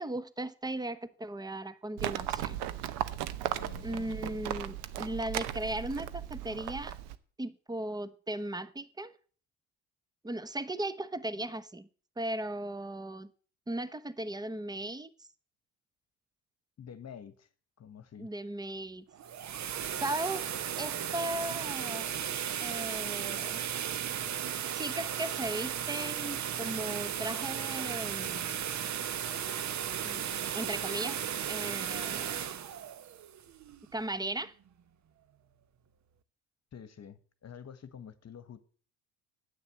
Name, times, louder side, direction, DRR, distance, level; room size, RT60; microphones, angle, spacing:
voice 1, 0.0-2.6 3.8-6.9 7.4-9.1 10.2-11.9 12.2-13.3 13.7-15.3 18.2-19.1 20.0-20.4 20.8-22.1 22.6-23.6 24.7-28.6 30.0-30.2 30.5-32.6 33.9-34.5, right 1 dB, 10° right, 1.0 m, -37 dB
Livestock farm animals working animals, 2.0-7.2, right 12 dB, 75° right, 1.0 m, -36 dB
voice 2, 3.5-4.2 16.8-17.5 17.8-18.3 36.7-38.6, left 8 dB, 40° left, 1.3 m, -48 dB
sound 1, 19.1-34.0, right 9 dB, 45° right, 0.9 m, -35 dB
9.7 x 8.5 x 7.5 m
hypercardioid pair, 65°, 41 cm